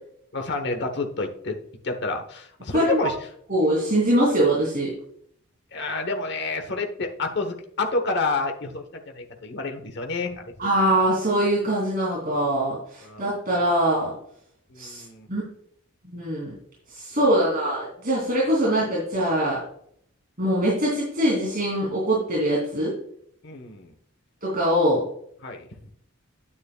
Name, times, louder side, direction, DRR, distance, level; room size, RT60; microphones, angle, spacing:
voice 1, 0.3-1.6 1.8-3.2 5.7-10.7 13.0-13.2 14.7-15.3 23.4-23.9 25.4-25.9, left 3 dB, 50° left, 5 dB, 1.1 m, -29 dB
voice 2, 2.7-3.1 3.5-4.9 10.6-14.1 14.8-15.0 15.3-15.4 16.0-16.5 16.9-19.6 20.4-22.9 24.4-25.0, right 1 dB, 40° right, -5 dB, 2.9 m, -23 dB
9.7 x 9.4 x 2.3 m, 0.66 s
head